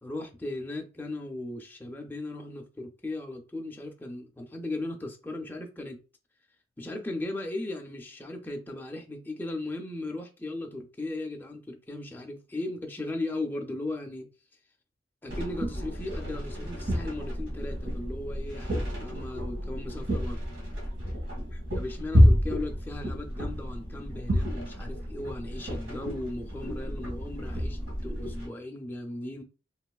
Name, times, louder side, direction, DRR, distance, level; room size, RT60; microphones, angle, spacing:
voice 1, 0.0-6.0 6.8-14.3 15.2-20.4 21.8-29.4, left 2 dB, 10° left, 0.4 m, -37 dB
sound 1, 15.3-28.5, equal, 65° right, 1.4 m, -29 dB
3.0 x 2.8 x 2.3 m
head